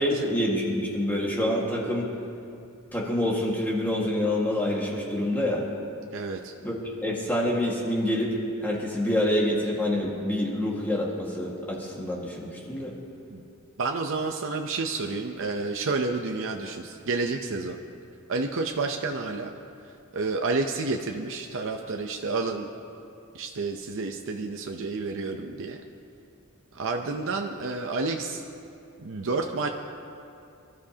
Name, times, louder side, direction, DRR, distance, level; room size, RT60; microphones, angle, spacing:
voice 1, 0.0-2.1 2.9-5.6 6.6-12.9, left 1 dB, 10° left, -4 dB, 1.7 m, -27 dB
voice 2, 6.1-6.5 13.3-13.4 13.8-17.8 18.3-19.5 20.1-22.7 23.3-25.8 26.7-28.4 29.0-29.7, right 3 dB, 60° right, 3 dB, 0.7 m, -30 dB
27.5 x 13.0 x 2.9 m, 2.6 s
head